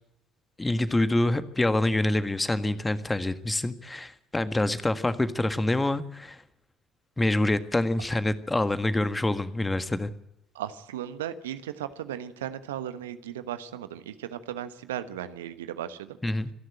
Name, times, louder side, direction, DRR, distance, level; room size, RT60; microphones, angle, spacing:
voice 1, 0.6-6.4 7.2-10.1 16.2-16.5, left 1 dB, 15° left, 12 dB, 1.6 m, -26 dB
voice 2, 10.5-16.2, right 10 dB, 80° right, 12 dB, 1.2 m, -36 dB
26.0 x 11.5 x 8.9 m, 0.83 s
figure-of-eight pair, 55°, 0 cm